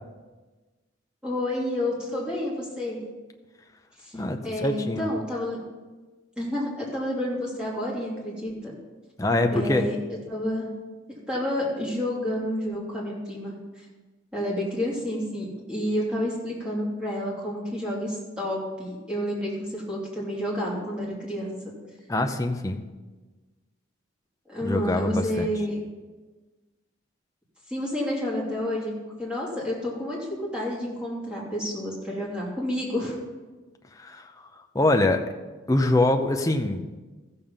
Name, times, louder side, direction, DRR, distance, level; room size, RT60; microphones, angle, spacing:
voice 1, 1.2-3.0 4.0-4.1 4.4-5.6 6.4-8.7 9.5-9.9 10.3-10.7 11.3-13.6 14.3-21.7 24.5-25.8 27.7-28.9 29.2-33.2, left 1 dB, 5° right, -5 dB, 2.9 m, -29 dB
voice 2, 4.1-5.1 9.2-9.8 22.1-22.8 24.6-25.5 34.0-34.3 34.7-35.3 35.7-36.9, left 2 dB, 15° left, 4 dB, 0.6 m, -24 dB
14.0 x 7.0 x 5.6 m, 1.3 s
head